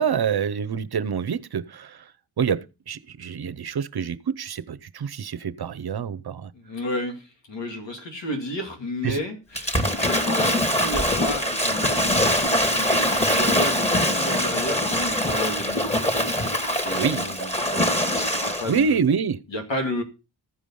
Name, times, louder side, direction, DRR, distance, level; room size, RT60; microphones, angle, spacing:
voice 1, 0.0-2.0 2.4-6.5 9.0-9.2 16.9-17.8 18.6-19.4, right 6 dB, 60° right, 0.8 m, -26 dB
voice 2, 6.5-12.4 12.7-17.5 17.8-19.0 19.5-20.0, left 1 dB, 80° left, 2.3 m, -32 dB
Waves surf / Splash splatter, 9.6-18.8, equal, 15° left, 2.1 m, -23 dB
15.0 x 5.0 x 5.3 m
cardioid pair, 50°, 43 cm